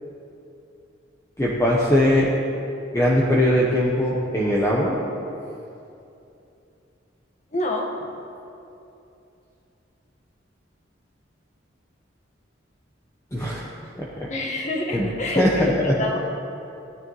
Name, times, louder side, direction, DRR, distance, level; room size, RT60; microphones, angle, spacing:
voice 1, 1.4-2.3 2.9-5.0 13.3-13.6 14.0-14.3 14.9-15.1 15.4-15.9, left 1 dB, 15° left, -5 dB, 1.0 m, -20 dB
voice 2, 7.5-8.1 14.3-16.2, left 1 dB, 40° left, 0 dB, 1.5 m, -27 dB
16.5 x 10.0 x 3.2 m, 2.7 s
head